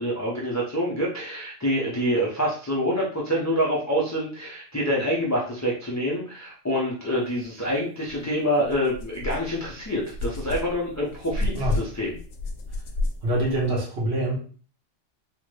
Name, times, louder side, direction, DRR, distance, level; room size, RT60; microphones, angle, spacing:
voice 1, 0.0-12.2, equal, 25° left, -5 dB, 0.4 m, -26 dB
sound 1, 8.1-8.2 8.6-13.7, left 2 dB, 85° left, 1.0 m, -31 dB
voice 2, 13.2-14.4, right 1 dB, 60° right, -5 dB, 1.5 m, -25 dB
3.7 x 2.2 x 3.1 m, 0.42 s
omnidirectional pair, 1.3 m